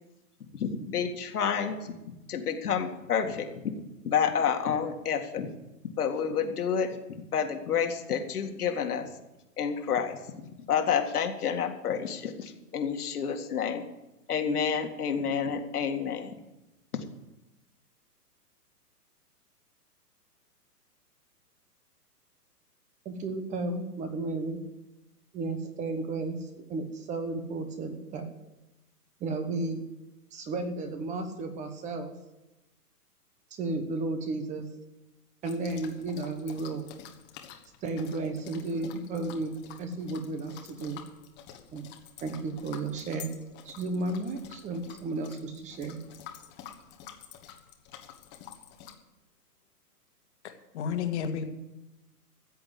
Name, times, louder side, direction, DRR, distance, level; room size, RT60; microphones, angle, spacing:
voice 1, 0.5-1.9 2.3-3.7 4.0-5.5 6.0-7.0 7.3-9.1 9.6-13.9 14.3-16.4 16.9-17.0, left 7 dB, 70° left, 5 dB, 2.2 m, -29 dB
voice 2, 23.0-24.6 25.3-28.3 29.2-29.8 30.3-32.2 33.5-34.7 35.4-36.8 37.8-41.0 41.7-41.8 42.2-43.3 43.6-46.0, right 3 dB, 15° right, 7 dB, 1.1 m, -33 dB
sound 1, 35.4-48.9, left 9 dB, 20° left, 1.4 m, -49 dB
voice 3, 50.4-51.4, left 7 dB, 45° left, 7 dB, 1.8 m, -32 dB
14.0 x 7.8 x 8.4 m, 0.99 s
hypercardioid pair, 140°, 47 cm